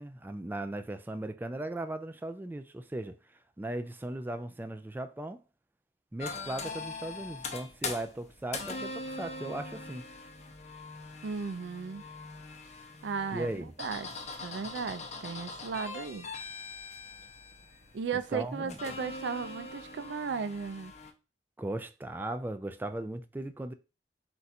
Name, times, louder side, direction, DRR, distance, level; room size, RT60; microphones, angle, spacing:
voice 1, 0.0-3.2 3.6-5.4 6.1-10.1 13.3-13.7 18.3-18.8 21.6-23.7, right 1 dB, 10° right, 0.3 m, -37 dB
sound 1, 6.2-21.1, left 3 dB, 40° left, 0.7 m, -42 dB
voice 2, 11.2-12.0 13.0-14.1 14.4-16.3 17.9-20.9, right 5 dB, 85° right, 0.4 m, -35 dB
4.5 x 2.5 x 4.1 m
head